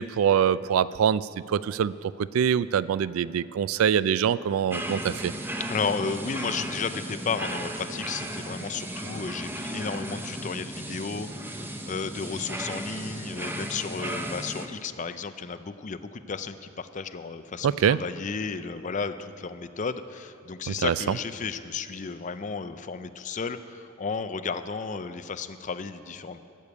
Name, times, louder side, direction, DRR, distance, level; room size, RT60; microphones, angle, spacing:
voice 1, 0.0-1.9 2.3-5.3 17.6-18.0 20.7-21.1, right 8 dB, 85° right, 18 dB, 0.3 m, -24 dB
sound 1, 4.7-14.7, right 1 dB, 10° right, 0.6 m, -35 dB
voice 2, 5.7-26.4, left 5 dB, 35° left, 10 dB, 0.5 m, -33 dB
14.0 x 6.8 x 8.2 m, 2.6 s
head